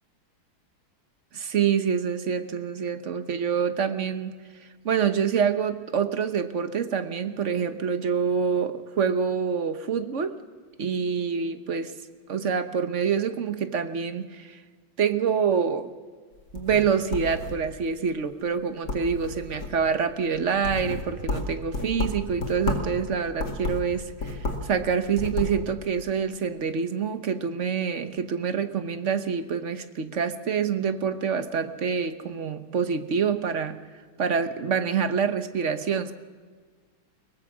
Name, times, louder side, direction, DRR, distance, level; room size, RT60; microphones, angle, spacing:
voice 1, 1.3-4.3 4.8-10.4 10.8-11.9 12.3-14.6 15.0-15.9 16.5-33.8 34.2-36.1, right 6 dB, 45° right, 10 dB, 1.1 m, -26 dB
sound 1, 16.4-17.9 18.3-18.6 18.9-19.9 20.3-23.0 23.3-24.8 25.0-25.6, left 3 dB, 55° left, 2.8 m, -31 dB
22.5 x 19.5 x 6.2 m, 1.5 s
omnidirectional pair, 2.3 m